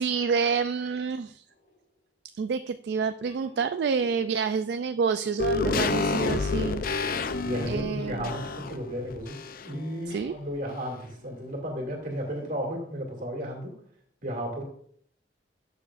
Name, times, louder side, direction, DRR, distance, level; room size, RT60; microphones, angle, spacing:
voice 1, 0.0-1.5 2.4-6.9 7.7-8.3 10.1-10.3, right 5 dB, 70° right, 11 dB, 0.3 m, -28 dB
sound 1, 1.5-1.9 3.3-9.2 9.6-11.0 13.4-13.5, right 2 dB, 70° left, 3.4 m, -49 dB
sound 2, 5.4-9.9 10.2-10.3, left 4 dB, 55° left, 0.5 m, -29 dB
voice 2, 7.4-13.7 14.2-14.6, equal, 50° right, 0 dB, 2.4 m, -34 dB
12.0 x 6.9 x 2.5 m, 0.62 s
head